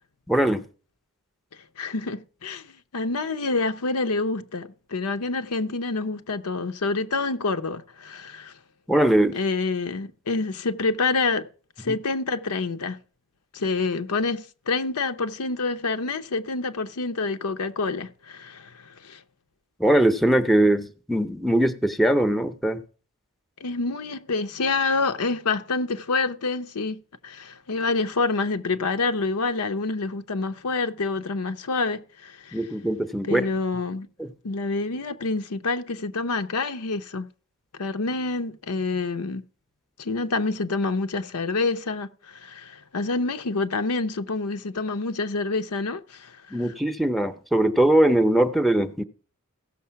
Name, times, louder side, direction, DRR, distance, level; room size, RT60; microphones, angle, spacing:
voice 1, 0.3-0.6 8.9-9.4 19.8-22.8 32.5-33.5 34.2-34.3 46.5-49.0, right 1 dB, ahead, 0.6 m, -21 dB
voice 2, 1.8-8.5 9.3-11.5 11.8-13.0 13.5-19.2 23.6-32.6 33.2-34.1 34.4-37.3 37.8-39.4 40.0-46.6, left 3 dB, 85° left, 0.7 m, -27 dB
15.5 x 6.5 x 5.7 m
head